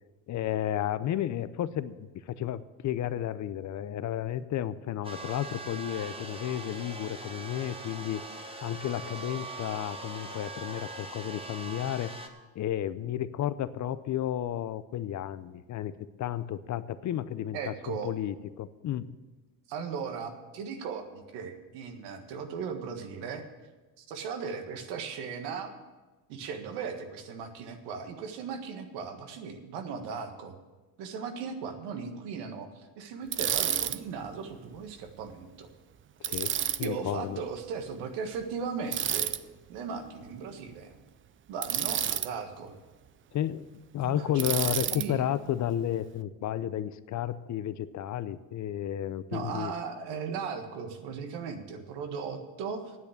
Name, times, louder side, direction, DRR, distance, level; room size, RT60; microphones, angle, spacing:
voice 1, 0.3-8.2 8.6-12.1 12.5-15.9 16.2-19.1 36.2-36.5 36.8-37.4 43.3-43.7 43.9-49.7, left 11 dB, 45° left, 15 dB, 0.6 m, -32 dB
sound 1, 5.0-12.3, right 2 dB, 15° right, 1.3 m, -41 dB
voice 2, 17.5-18.1 19.7-23.4 24.0-25.7 26.3-30.5 31.0-35.7 36.8-39.3 39.7-40.9 41.5-42.8 44.0-45.3 49.3-53.0, right 6 dB, 80° right, 6 dB, 1.6 m, -37 dB
Bicycle, 33.3-34.0 36.2-36.9 38.9-39.4 41.6-42.3 44.4-45.1, right 10 dB, 30° right, 0.5 m, -29 dB
9.5 x 8.1 x 8.4 m, 1.2 s
supercardioid pair, 100°, 40 cm